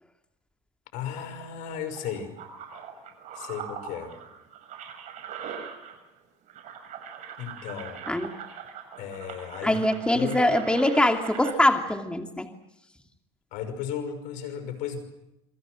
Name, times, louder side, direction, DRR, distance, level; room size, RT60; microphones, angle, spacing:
voice 1, 0.9-2.3 3.3-4.1 7.4-8.0 9.0-9.8 10.1-10.6 13.5-15.0, left 8 dB, 70° left, 10 dB, 5.8 m, -35 dB
sound 1, 1.1-6.2 6.5-11.5, right 7 dB, 65° right, 6.9 m, -42 dB
voice 2, 9.6-12.5, left 1 dB, 5° left, 5 dB, 2.8 m, -23 dB
27.0 x 26.0 x 6.5 m, 0.88 s
supercardioid pair, 80°, 14 cm